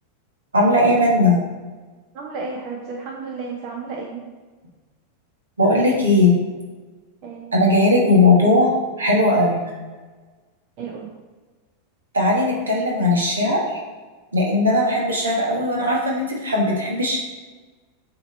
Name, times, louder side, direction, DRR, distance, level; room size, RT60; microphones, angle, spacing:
voice 1, 0.5-1.4 5.6-6.4 7.6-8.7 9.0-9.6 12.1-13.8 14.3-17.2, left 2 dB, 75° right, -2 dB, 1.5 m, -18 dB
voice 2, 2.1-4.3 7.2-7.5 10.8-11.2, right 4 dB, 40° right, 1 dB, 0.7 m, -32 dB
7.8 x 3.0 x 4.2 m, 1.3 s
figure-of-eight pair, 90°, 0 cm